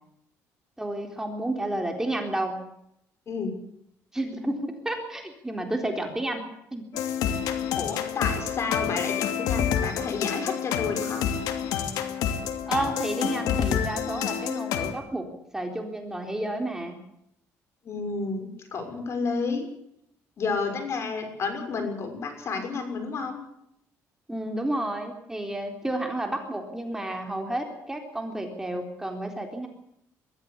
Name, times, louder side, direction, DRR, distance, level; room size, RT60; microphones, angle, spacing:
voice 1, 0.8-2.6 4.1-6.4 6.7-6.8 12.7-15.3 15.5-17.0 24.3-29.7, right 1 dB, 10° right, 3 dB, 3.8 m, -31 dB
sound 1, 6.9-14.9, left 8 dB, 85° left, 2.7 m, -28 dB
voice 2, 7.8-11.2 17.8-19.7 20.4-23.4, left 4 dB, 50° left, 6 dB, 6.3 m, -31 dB
22.5 x 14.0 x 8.5 m, 0.77 s
cardioid pair, 100°, 6 cm